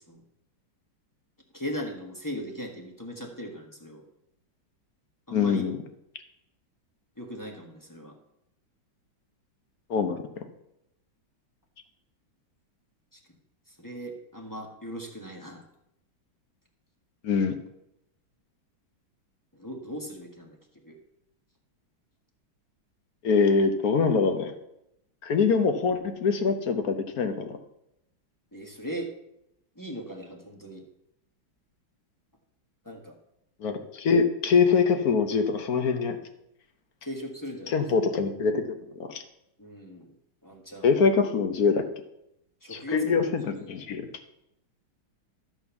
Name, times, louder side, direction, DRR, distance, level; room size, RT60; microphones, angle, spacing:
voice 1, 1.5-4.0 5.3-5.6 7.2-8.1 13.1-13.2 13.7-15.6 19.5-20.6 20.8-21.0 28.5-29.1 29.7-30.8 32.8-33.1 37.0-37.8 39.6-40.1 40.4-40.9 42.6-43.8, equal, 10° left, 1 dB, 1.3 m, -38 dB
voice 2, 5.3-5.8 9.9-10.2 17.2-17.6 23.2-24.5 25.2-27.6 33.6-36.2 37.7-39.2 40.8-41.8 42.7-43.4 43.7-44.0, left 5 dB, 55° left, 7 dB, 1.2 m, -24 dB
13.0 x 4.4 x 6.9 m, 0.82 s
omnidirectional pair, 2.2 m